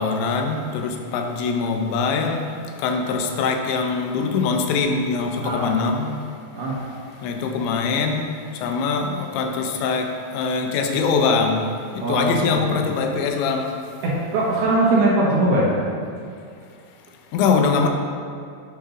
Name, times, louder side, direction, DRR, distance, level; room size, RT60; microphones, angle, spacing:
voice 1, 0.0-2.5 2.8-6.1 7.2-8.3 8.6-11.6 12.1-13.7 17.3-17.9, left 5 dB, 85° left, 4 dB, 2.9 m, -22 dB
voice 2, 5.4-5.8 6.5-6.8 12.0-12.9 14.0-15.7, right 2 dB, 70° right, -6 dB, 2.7 m, -21 dB
9.4 x 3.7 x 5.7 m, 2.4 s
omnidirectional pair, 5.3 m